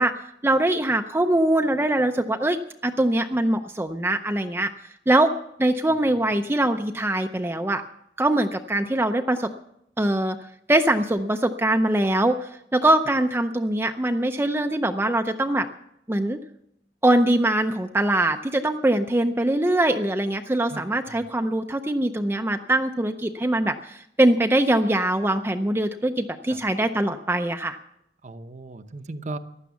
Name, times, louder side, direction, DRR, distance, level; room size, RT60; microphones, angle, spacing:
voice 1, 0.0-4.7 5.1-5.3 5.6-7.8 8.2-9.5 10.0-10.4 10.7-15.7 16.1-16.4 17.0-27.8, right 1 dB, 15° right, 5 dB, 0.5 m, -22 dB
voice 2, 20.7-21.2 26.5-26.6 28.2-29.4, right 2 dB, 40° right, 9 dB, 0.8 m, -37 dB
15.5 x 11.5 x 7.1 m, 0.78 s
head